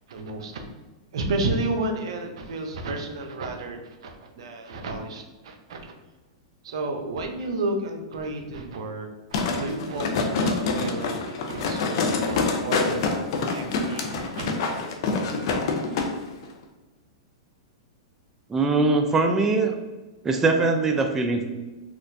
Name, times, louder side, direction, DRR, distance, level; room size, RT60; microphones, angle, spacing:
voice 1, 0.1-0.6 1.1-5.9 6.6-13.0 13.5-14.8, right 2 dB, 70° right, 4 dB, 0.6 m, -32 dB
sound 1, 9.3-16.1 16.4-16.5, left 4 dB, 60° left, 0.6 m, -26 dB
voice 2, 18.5-19.7 20.2-21.4, right 3 dB, 15° right, 3 dB, 0.3 m, -21 dB
4.2 x 2.4 x 2.6 m, 1.2 s
hypercardioid pair, 120°, 3 cm